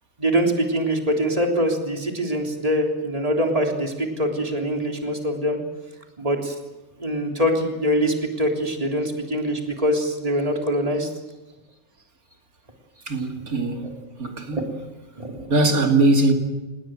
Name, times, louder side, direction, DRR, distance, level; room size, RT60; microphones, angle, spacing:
voice 1, 0.2-5.6 6.2-6.6 7.0-11.1 14.5-14.6 15.2-15.5, equal, 25° right, 3.6 m, -23 dB
voice 2, 13.1-14.8 15.5-16.3, right 2 dB, 85° right, 3.1 m, -21 dB
27.5 x 20.5 x 7.7 m
omnidirectional pair, 1.5 m